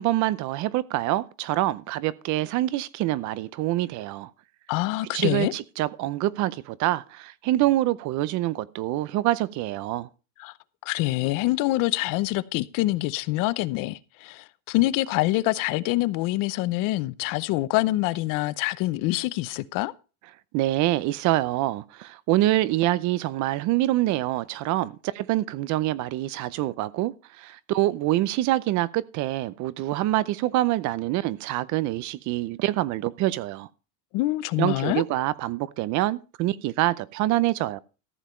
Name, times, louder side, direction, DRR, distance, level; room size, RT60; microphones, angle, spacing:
voice 1, 0.0-4.3 5.1-10.1 20.5-33.7 34.6-37.8, right 16 dB, 45° right, 0.7 m, -25 dB
voice 2, 4.7-5.5 10.4-10.5 10.8-19.9 34.1-35.0, left 18 dB, 50° left, 0.7 m, -25 dB
14.0 x 7.3 x 4.4 m
supercardioid pair, 140°, 40 cm